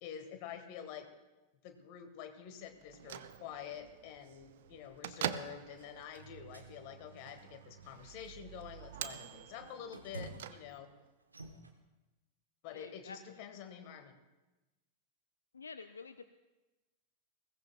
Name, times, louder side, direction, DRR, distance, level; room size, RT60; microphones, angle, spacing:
voice 1, 0.0-1.1 1.6-10.9 12.6-14.2, left 9 dB, 45° left, 8 dB, 1.3 m, -48 dB
Bell / Microwave oven, 2.8-11.1, right 11 dB, 55° right, 0.5 m, -46 dB
sound 1, 4.7-4.9 6.1-6.7 7.3-7.6 8.3-8.5 8.8-10.7 11.2-11.7, right 2 dB, 80° right, 1.1 m, -50 dB
voice 2, 12.7-13.4 15.5-16.3, left 4 dB, 75° left, 10 dB, 0.4 m, -49 dB
21.0 x 17.0 x 2.2 m, 1.1 s
figure-of-eight pair, 90°, 0 cm